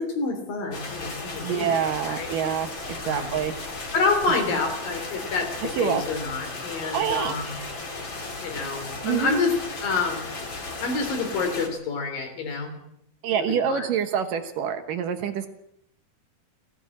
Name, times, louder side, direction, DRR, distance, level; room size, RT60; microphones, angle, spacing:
voice 1, 0.0-1.8 2.1-2.3 3.0-3.4 3.9-7.6 8.4-9.5 9.8-10.3 10.8-12.7 13.5-13.9, left 4 dB, 65° left, 6 dB, 4.9 m, -28 dB
sound 1, 0.7-11.7, left 3 dB, 35° left, 3.2 m, -35 dB
voice 2, 1.4-3.5 5.8-6.0 6.9-7.3 9.0-9.4 13.2-15.5, right 8 dB, 65° right, 8 dB, 2.7 m, -26 dB
18.5 x 16.0 x 8.7 m, 0.76 s
omnidirectional pair, 4.4 m